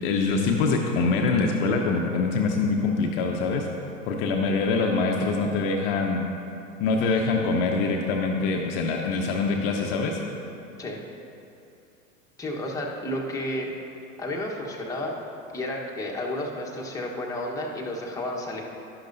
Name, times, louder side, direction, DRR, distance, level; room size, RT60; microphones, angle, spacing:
voice 1, 0.0-3.7 4.1-6.2 6.8-10.2, left 4 dB, 45° left, 1 dB, 0.8 m, -24 dB
voice 2, 12.4-13.7 14.2-15.2 15.5-18.6, left 1 dB, 10° left, -3 dB, 1.2 m, -31 dB
11.5 x 11.5 x 2.7 m, 2.7 s
figure-of-eight pair, 90°, 41 cm